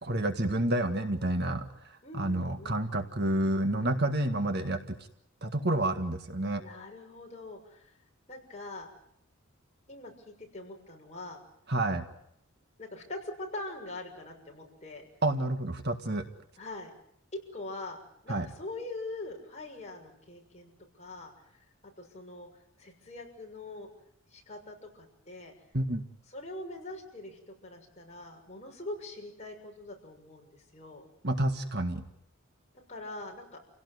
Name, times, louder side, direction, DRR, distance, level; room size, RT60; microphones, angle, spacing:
voice 1, 0.0-4.9 5.4-6.6 11.7-12.1 15.2-16.2 18.3-18.5 25.7-26.0 31.2-32.0, right 1 dB, 50° right, 7 dB, 1.8 m, -29 dB
voice 2, 2.0-2.8 6.6-7.9 8.3-8.9 9.9-11.4 12.8-15.0 16.6-16.9 17.3-18.0 18.2-21.6 22.0-22.5 22.8-23.9 24.3-25.5 26.3-31.1 32.9-33.6, left 2 dB, 30° left, 0 dB, 6.6 m, -43 dB
29.0 x 17.5 x 9.7 m, 0.74 s
head